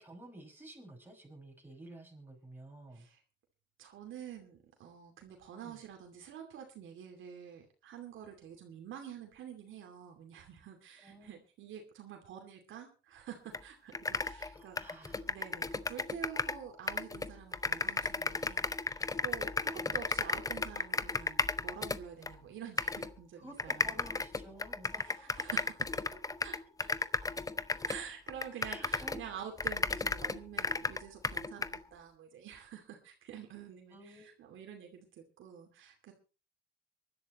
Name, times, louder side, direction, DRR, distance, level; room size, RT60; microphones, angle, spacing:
voice 1, 0.0-3.1 5.5-5.8 11.0-11.4 14.5-15.3 19.7-19.9 23.4-25.5 28.6-29.3 33.9-34.4, right 1 dB, 10° right, 0 dB, 5.8 m, -52 dB
voice 2, 3.8-24.0 25.0-25.9 26.4-26.5 26.8-26.9 27.7-36.1, right 8 dB, 80° right, 3 dB, 2.6 m, -48 dB
sound 1, 13.5-13.6 13.9-16.6 16.9-22.3 22.8-23.1 23.6-29.3 29.6-31.8, left 3 dB, 15° left, 0.7 m, -34 dB
23.5 x 11.5 x 3.0 m, 0.33 s
cardioid pair, 90°, 20 cm